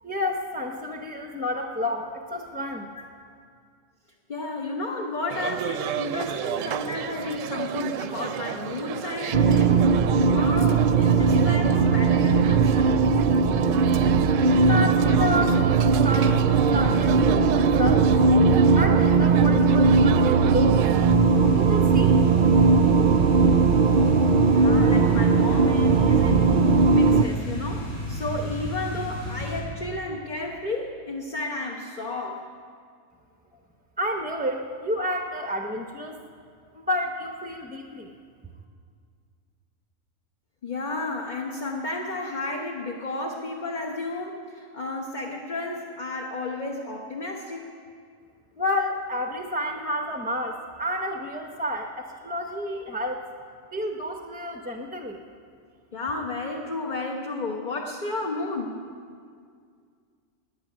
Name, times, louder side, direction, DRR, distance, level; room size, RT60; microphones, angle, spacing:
voice 1, 0.0-2.9 14.5-18.1 18.8-20.9 21.5-22.2 34.0-36.2 36.7-38.1 48.6-53.2 53.7-55.2, left 1 dB, 10° right, 2 dB, 0.7 m, -30 dB
voice 2, 4.3-9.9 10.2-13.1 24.5-26.5 26.9-32.5 40.6-47.7 55.9-58.8, left 2 dB, 40° left, 0 dB, 1.2 m, -32 dB
sound 1, 5.3-21.2, right 10 dB, 80° right, 0.9 m, -32 dB
sound 2, 9.3-27.2, right 4 dB, 55° right, 0.5 m, -19 dB
sound 3, 20.9-29.6, equal, 80° left, 3.8 m, -33 dB
15.0 x 9.2 x 9.9 m, 2.2 s
omnidirectional pair, 1.3 m